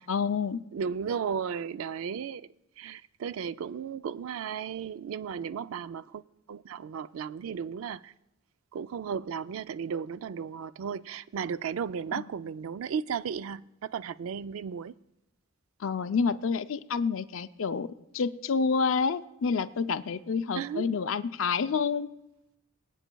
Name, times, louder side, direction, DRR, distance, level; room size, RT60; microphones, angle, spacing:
voice 1, 0.0-0.6 15.8-17.9 18.1-22.1, left 5 dB, 65° left, 0.5 m, -28 dB
voice 2, 0.7-2.5 2.8-6.2 6.5-8.1 8.7-14.9 20.6-20.9, right 7 dB, 75° right, 0.3 m, -35 dB
25.5 x 9.1 x 2.3 m
head